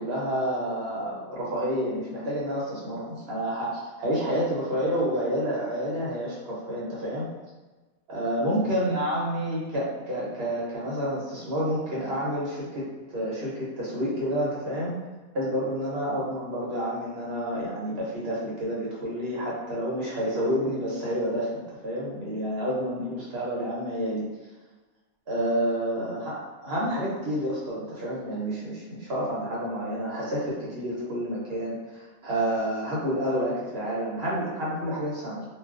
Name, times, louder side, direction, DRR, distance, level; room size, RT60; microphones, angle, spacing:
voice 1, 0.0-7.3 8.1-12.9 13.1-15.0 15.3-24.2 25.3-35.5, equal, 55° right, -6 dB, 0.8 m, -29 dB
2.3 x 2.3 x 2.3 m, 1.2 s
omnidirectional pair, 1.4 m